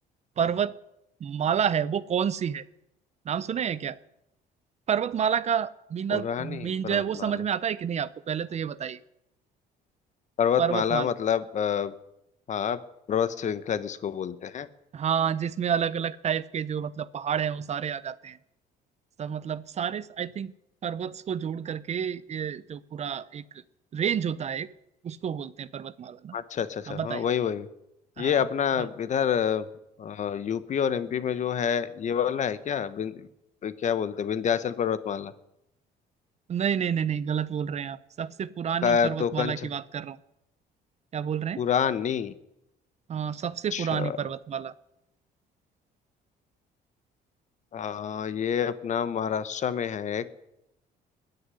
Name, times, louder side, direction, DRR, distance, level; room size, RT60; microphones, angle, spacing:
voice 1, 0.4-0.8 1.2-2.6 3.2-4.0 4.9-9.0 10.6-11.1 14.9-18.4 19.2-20.5 20.8-23.4 23.9-24.7 25.0-26.4 26.9-27.3 28.2-28.4 28.8-28.9 36.5-40.2 41.1-41.6 43.1-44.7, right 8 dB, 40° right, 17 dB, 0.7 m, -29 dB
voice 2, 6.1-7.3 10.4-11.9 12.5-12.8 13.1-14.7 26.3-27.7 28.2-29.6 30.0-33.3 33.6-35.3 38.8-39.7 41.6-42.3 43.7-44.2 47.7-50.4, left 8 dB, 45° left, 15 dB, 1.1 m, -28 dB
20.5 x 6.8 x 9.9 m, 0.84 s
cardioid pair, 110°, 17 cm